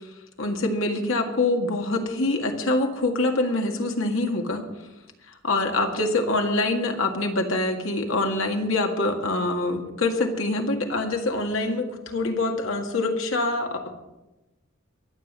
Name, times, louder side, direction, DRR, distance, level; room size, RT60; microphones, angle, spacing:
voice 1, 0.4-4.6 5.4-13.9, left 2 dB, 75° left, 3 dB, 1.9 m, -25 dB
23.0 x 7.9 x 5.4 m, 1.0 s
head